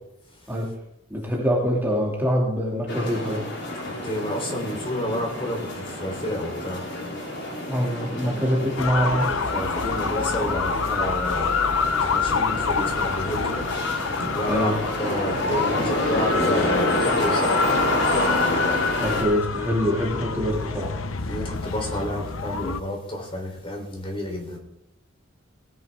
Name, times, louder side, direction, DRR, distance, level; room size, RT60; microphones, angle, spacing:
voice 1, 1.1-3.4 7.7-9.3 14.5-14.8 19.0-20.9, equal, 10° right, -3 dB, 2.4 m, -24 dB
sound 1, 2.9-19.2, left 1 dB, 65° left, 4.1 m, -28 dB
voice 2, 3.8-6.8 9.3-13.7 14.0-17.6 21.2-24.6, left 1 dB, 30° left, 1 dB, 3.5 m, -30 dB
sound 2, 8.8-22.8, left 5 dB, 85° left, 0.8 m, -27 dB
19.0 x 10.5 x 3.6 m, 0.82 s
head